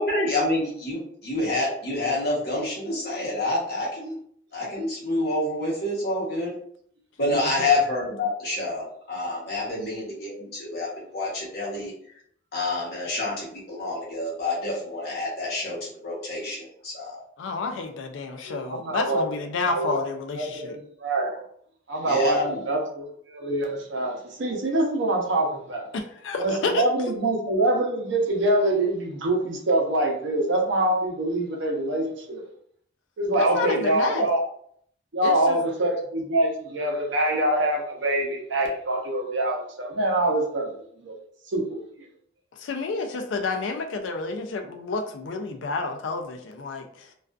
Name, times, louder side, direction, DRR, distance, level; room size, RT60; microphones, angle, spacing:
voice 1, 0.0-4.2 4.5-6.5 7.2-11.9 12.5-17.2 22.0-22.7, left 2 dB, 55° left, -4 dB, 0.9 m, -28 dB
voice 2, 17.4-20.8 25.9-26.8 33.4-34.3 35.2-35.6 42.6-47.1, left 4 dB, 85° left, 5 dB, 0.4 m, -30 dB
voice 3, 18.4-19.3 19.7-20.0 20.3-21.4 21.9-22.4 22.7-25.9 26.4-32.4 33.2-34.5 35.1-41.1 41.5-41.8, right 1 dB, 80° right, 0 dB, 0.6 m, -25 dB
2.4 x 2.3 x 2.2 m, 0.64 s
head